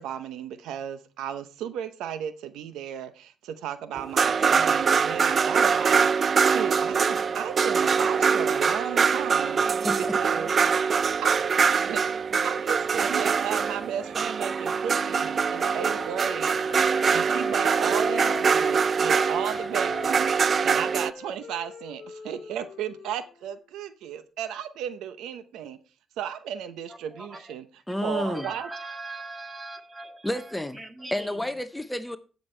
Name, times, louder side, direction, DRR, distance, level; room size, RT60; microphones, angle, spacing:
voice 1, 0.0-10.5 11.2-20.3 20.6-25.8 26.2-27.6 28.0-28.7, right 9 dB, 85° right, 0.7 m, -35 dB
sound 1, 3.9-21.1, right 6 dB, 45° right, 0.4 m, -23 dB
voice 2, 9.8-10.2 27.9-28.5 30.2-30.8 31.1-32.2, left 1 dB, 10° left, 0.7 m, -30 dB
Wind instrument woodwind instrument, 14.3-18.8 19.1-23.6, left 6 dB, 50° left, 1.0 m, -42 dB
voice 3, 26.9-27.5 28.0-31.4, right 2 dB, 20° right, 1.7 m, -41 dB
16.0 x 6.3 x 3.3 m
cardioid pair, 90°, 0 cm